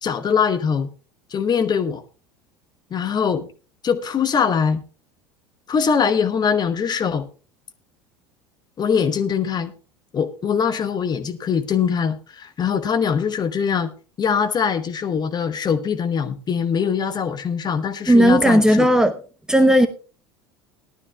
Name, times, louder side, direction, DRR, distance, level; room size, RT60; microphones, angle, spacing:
voice 1, 0.0-0.9 1.3-2.0 2.9-3.5 3.8-4.8 5.7-7.3 8.8-9.7 10.1-13.9 14.2-18.9, left 6 dB, 30° left, 1.1 m, -22 dB
voice 2, 18.1-19.1 19.5-19.9, equal, 5° right, 1.0 m, -14 dB
18.5 x 12.0 x 2.3 m
figure-of-eight pair, 70°, 13 cm